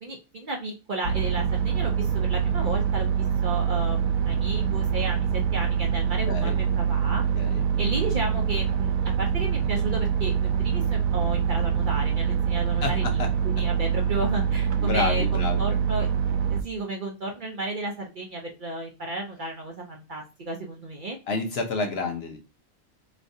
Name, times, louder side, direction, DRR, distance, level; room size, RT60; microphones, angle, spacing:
voice 1, 0.0-3.1 3.4-7.2 7.8-16.1 16.5-21.2, right 2 dB, 50° right, 1 dB, 0.6 m, -33 dB
sound 1, 1.0-16.6, right 7 dB, 85° right, 1.1 m, -25 dB
voice 2, 12.8-13.3 14.8-15.7 21.3-22.4, left 4 dB, 55° left, 3 dB, 0.9 m, -29 dB
4.6 x 3.1 x 2.6 m, 0.30 s
omnidirectional pair, 1.4 m